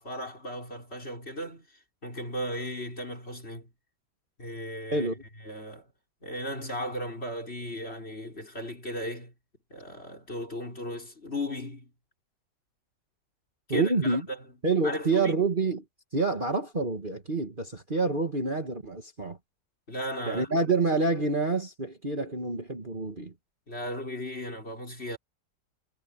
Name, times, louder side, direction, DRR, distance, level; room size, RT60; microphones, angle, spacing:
voice 1, 0.0-3.7 4.4-5.1 5.4-5.9 6.2-9.3 9.7-11.9 13.7-14.4 14.8-15.4 19.9-20.5 23.7-25.2, equal, 35° left, 5.7 m, -36 dB
voice 2, 4.9-5.2 13.7-14.2 14.6-15.8 16.1-19.4 20.3-23.3, right 3 dB, 30° right, 2.2 m, -27 dB
omnidirectional pair, 1.9 m